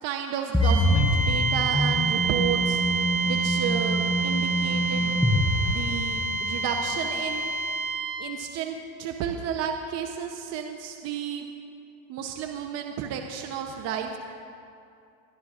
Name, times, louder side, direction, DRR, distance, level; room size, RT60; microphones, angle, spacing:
voice 1, 0.0-2.8 3.2-5.2 5.7-7.5 8.2-11.5 12.1-14.2, right 7 dB, 40° right, 4 dB, 0.7 m, -32 dB
sound 1, 0.5-6.5, equal, ahead, 0.4 m, -25 dB
sound 2, 0.6-8.3, right 3 dB, 15° right, 2.7 m, -28 dB
24.0 x 11.0 x 2.4 m, 2.5 s
supercardioid pair, 130°, 40 cm